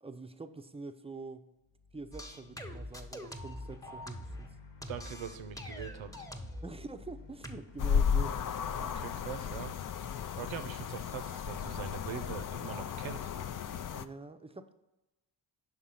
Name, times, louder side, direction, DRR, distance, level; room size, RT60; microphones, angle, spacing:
voice 1, 0.0-1.5 1.9-4.6 6.6-8.6 13.9-14.7, right 3 dB, 15° right, 9 dB, 0.5 m, -45 dB
sound 1, 1.6-11.9, left 4 dB, 60° left, 1.1 m, -53 dB
sound 2, 2.1-4.5 4.8-6.7 7.4-7.6, left 1 dB, 5° left, 0.8 m, -43 dB
voice 2, 4.9-6.1 8.8-9.7 10.3-13.3, right 8 dB, 80° right, 10 dB, 0.7 m, -42 dB
sound 3, 7.8-14.0, left 7 dB, 45° left, 0.4 m, -34 dB
6.1 x 3.7 x 5.7 m, 1.0 s
cardioid pair, 50°, 46 cm